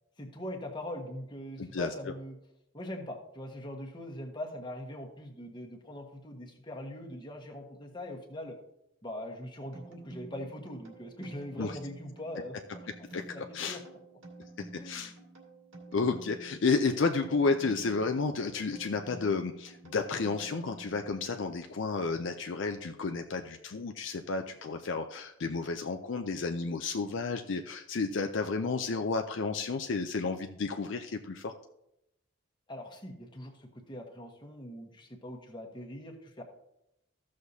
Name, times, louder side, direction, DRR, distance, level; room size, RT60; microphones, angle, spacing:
voice 1, 0.2-2.4 2.7-8.6 9.0-12.5 13.0-13.8 14.8-15.1 32.7-36.4, left 1 dB, 20° left, 1 dB, 1.3 m, -42 dB
voice 2, 1.6-1.9 11.6-11.7 13.1-13.2 13.5-13.8 14.6-15.1 15.9-31.5, left 4 dB, 60° left, 5 dB, 0.5 m, -31 dB
sound 1, 9.7-21.9, right 2 dB, 70° right, 2.2 m, -50 dB
15.0 x 6.4 x 2.7 m, 0.84 s
head